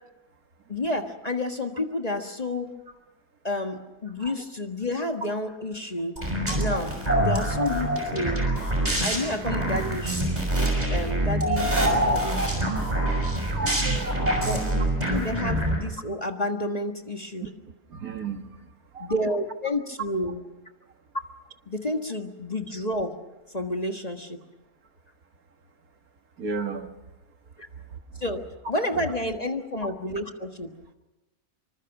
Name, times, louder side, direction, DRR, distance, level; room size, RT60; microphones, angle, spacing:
voice 1, 0.7-2.7 3.4-6.2 6.6-8.6 9.0-10.3 10.9-12.7 14.4-14.8 15.1-17.5 19.0-20.4 21.7-23.2 23.5-24.4 27.6-27.7 28.2-30.7, left 1 dB, 25° left, 5 dB, 1.6 m, -30 dB
sound 1, 6.2-15.8, right 1 dB, 25° right, 6.2 m, -25 dB
voice 2, 6.2-6.7 7.3-7.5 8.9-9.3 12.2-12.3 13.1-14.2 17.4-17.5 17.9-18.6 18.9-19.1 26.4-27.0 27.9-28.2, right 5 dB, 65° right, 6 dB, 2.0 m, -36 dB
25.5 x 25.0 x 6.0 m, 1.0 s
omnidirectional pair, 1.6 m